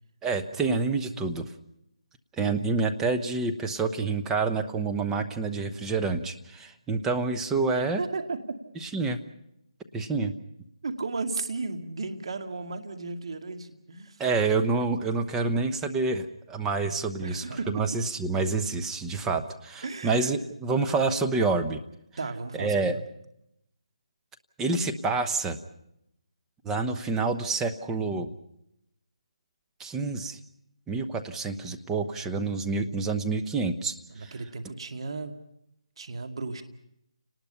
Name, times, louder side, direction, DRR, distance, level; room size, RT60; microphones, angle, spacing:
voice 1, 0.2-1.5 2.4-8.0 8.8-9.2 9.9-10.3 14.2-21.8 22.6-22.9 24.6-25.6 26.6-28.3 29.8-30.4 30.9-34.3, right 3 dB, 10° right, 5 dB, 0.9 m, -28 dB
voice 2, 7.7-8.4 10.8-14.2 17.2-18.0 19.8-20.3 22.2-23.0 34.1-35.3 36.0-36.6, right 3 dB, 60° right, 6 dB, 2.2 m, -35 dB
29.5 x 19.5 x 5.7 m, 0.81 s
hypercardioid pair, 165°, 3 cm